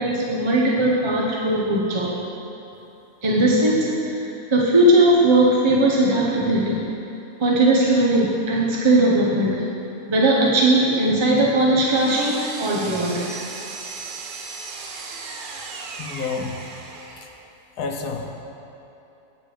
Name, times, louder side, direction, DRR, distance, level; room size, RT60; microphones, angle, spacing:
voice 1, 0.0-2.1 3.2-6.8 7.4-9.6 10.1-13.3, right 1 dB, 25° right, -4 dB, 0.8 m, -19 dB
Power tool, 11.4-17.5, right 4 dB, 50° right, 0.6 m, -36 dB
voice 2, 16.0-16.6 17.1-17.3 17.8-18.3, left 4 dB, 85° left, 3 dB, 1.4 m, -29 dB
9.0 x 8.1 x 5.1 m, 3.0 s
omnidirectional pair, 1.6 m